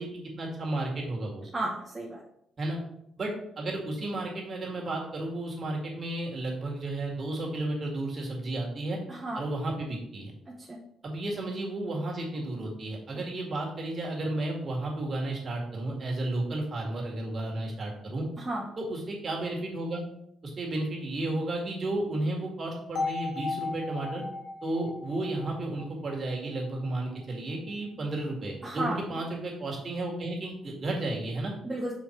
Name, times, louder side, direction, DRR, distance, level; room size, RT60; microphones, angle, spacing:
voice 1, 0.0-1.5 2.6-2.8 3.2-9.0 9.4-10.3 11.0-18.2 18.9-20.0 20.4-24.2 24.6-31.5, right 2 dB, 40° right, -1 dB, 2.1 m, -33 dB
voice 2, 1.5-2.2 9.1-9.4 10.6-10.8 18.4-18.7 28.6-29.0 31.6-31.9, right 1 dB, 15° right, -4 dB, 1.2 m, -33 dB
sound 1, 23.0-26.9, left 3 dB, 70° left, 2.2 m, -36 dB
5.5 x 4.5 x 4.6 m, 0.75 s
cardioid pair, 90°, 0 cm